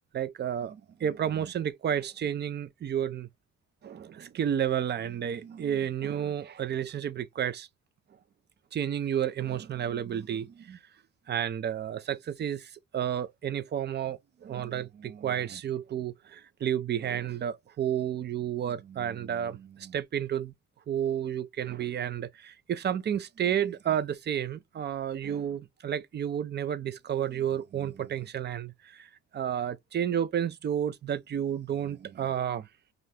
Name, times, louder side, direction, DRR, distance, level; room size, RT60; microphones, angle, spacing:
voice 1, 0.1-3.3 3.8-7.7 8.7-10.8 11.3-20.5 20.9-32.7, right 9 dB, 35° right, 0.4 m, -31 dB
2.6 x 2.5 x 3.2 m
cardioid pair, 90°, 30 cm